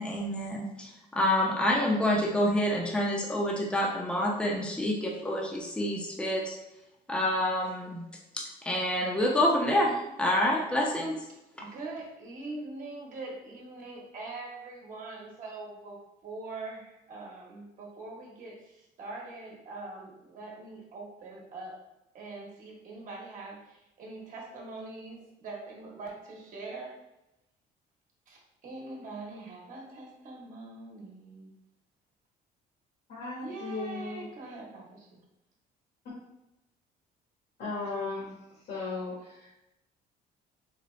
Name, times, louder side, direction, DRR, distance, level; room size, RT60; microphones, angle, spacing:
voice 1, 0.0-6.6 7.1-8.0 8.3-11.2, left 1 dB, 5° left, -2 dB, 0.6 m, -27 dB
voice 2, 11.5-21.8 22.1-26.9 28.3-31.5 33.4-35.2, right 3 dB, 50° right, -2 dB, 1.1 m, -43 dB
voice 3, 33.1-34.3 37.6-38.4 38.6-39.5, left 3 dB, 70° left, -8 dB, 1.4 m, -36 dB
4.0 x 2.3 x 3.1 m, 0.89 s
cardioid pair, 110°, 17 cm